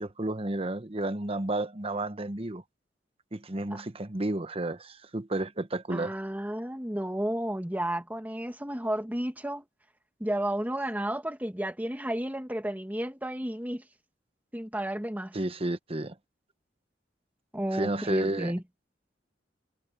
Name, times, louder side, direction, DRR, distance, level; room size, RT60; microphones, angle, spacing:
voice 1, 0.0-2.6 3.3-6.2 15.3-16.2 17.7-18.5, right 2 dB, 30° right, 1.1 m, -31 dB
voice 2, 5.9-9.6 10.2-13.8 14.5-15.4 17.5-18.6, right 1 dB, 10° right, 1.5 m, -32 dB
head